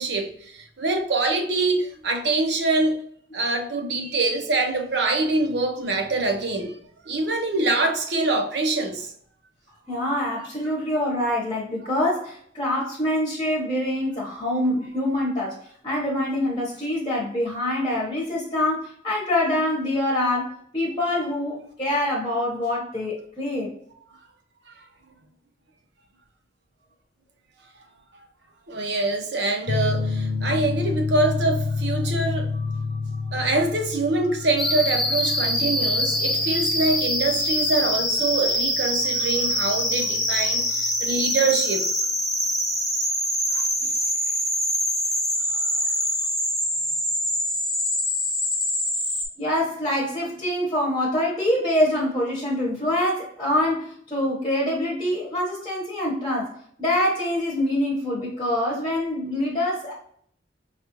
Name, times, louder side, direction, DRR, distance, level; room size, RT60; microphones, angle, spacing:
voice 1, 0.0-3.0 3.3-6.7 7.0-9.1 28.7-32.9 33.3-41.9 43.5-43.9, right 2 dB, 65° right, 0.7 m, -25 dB
voice 2, 9.9-15.6 15.8-23.7 49.4-56.5 56.8-59.9, left 1 dB, 25° left, 0.9 m, -25 dB
sound 1, 29.7-40.9, left 4 dB, 70° left, 0.4 m, -30 dB
sound 2, 34.6-49.2, equal, ahead, 0.7 m, -24 dB
4.8 x 2.4 x 2.9 m
head